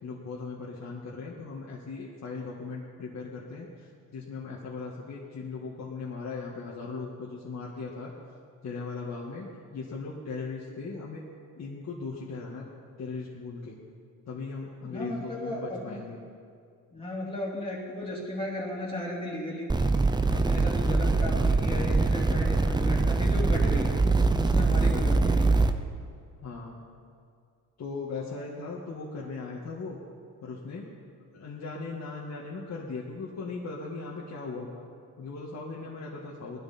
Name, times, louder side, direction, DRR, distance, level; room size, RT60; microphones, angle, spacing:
voice 1, 0.0-8.1 8.6-9.5 9.7-11.2 11.6-12.7 13.0-13.8 14.3-16.2 26.4-26.8 27.8-30.0 30.4-30.9 31.3-34.8 35.2-36.6, left 4 dB, 55° left, -4 dB, 2.0 m, -38 dB
voice 2, 14.8-16.0 16.9-19.9 20.3-24.0 24.4-25.5, left 1 dB, 15° left, -6 dB, 3.3 m, -35 dB
sound 1, 19.7-25.7, right 3 dB, 15° right, 0.7 m, -23 dB
19.0 x 12.5 x 4.4 m, 2.2 s
cardioid pair, 100°, 33 cm